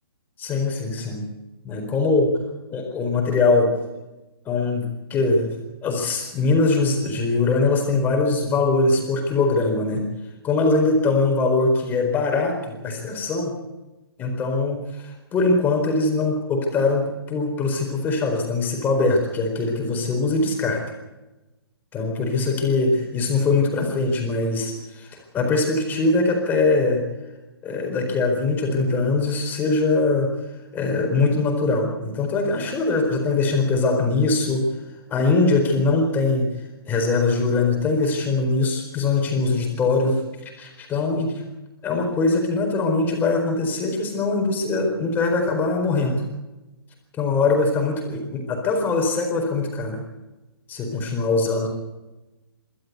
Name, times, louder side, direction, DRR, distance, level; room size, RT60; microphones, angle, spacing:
voice 1, 0.4-1.2 1.6-2.3 2.7-3.7 4.4-10.0 10.4-13.5 14.2-20.8 21.9-25.1 25.3-27.0 27.6-30.3 30.7-34.7 35.1-36.5 36.9-40.2 40.6-41.4 41.8-46.2 47.2-50.0 50.7-51.7, left 3 dB, 15° left, 2 dB, 4.4 m, -22 dB
26.5 x 13.0 x 8.2 m, 1.1 s
hypercardioid pair, 150°, 13 cm